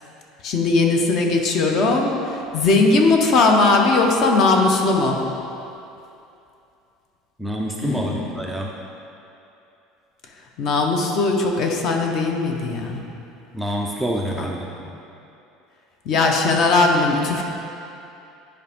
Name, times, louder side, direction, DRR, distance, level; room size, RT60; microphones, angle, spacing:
voice 1, 0.4-5.2 7.8-8.3 10.6-13.0 14.3-14.5 16.1-17.4, left 3 dB, 40° left, 2 dB, 0.7 m, -19 dB
voice 2, 7.4-8.7 13.5-14.7, equal, ahead, -2 dB, 0.3 m, -27 dB
9.5 x 5.0 x 3.5 m, 2.8 s
cardioid pair, 175°, 0 cm